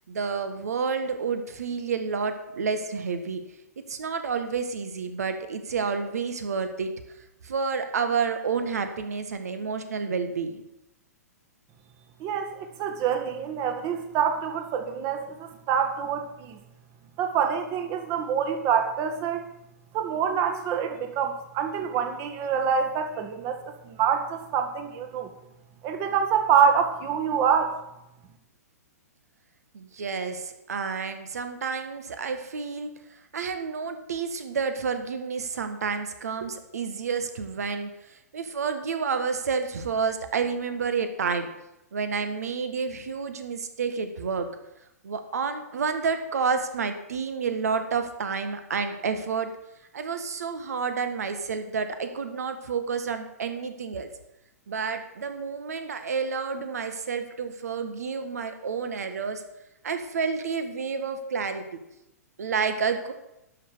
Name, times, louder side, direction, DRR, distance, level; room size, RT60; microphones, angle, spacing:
voice 1, 0.1-3.4 3.9-6.9 7.4-10.6 29.7-32.9 33.3-41.5 41.9-44.5 45.0-49.5 49.9-54.1 54.7-59.4 59.8-61.6 62.4-63.1, right 5 dB, 70° right, 8 dB, 1.6 m, -29 dB
voice 2, 12.2-16.6 17.2-19.4 19.9-25.3 25.8-27.7, right 7 dB, 35° right, 6 dB, 1.8 m, -26 dB
12.0 x 6.2 x 6.8 m, 0.88 s
figure-of-eight pair, 115°, 9 cm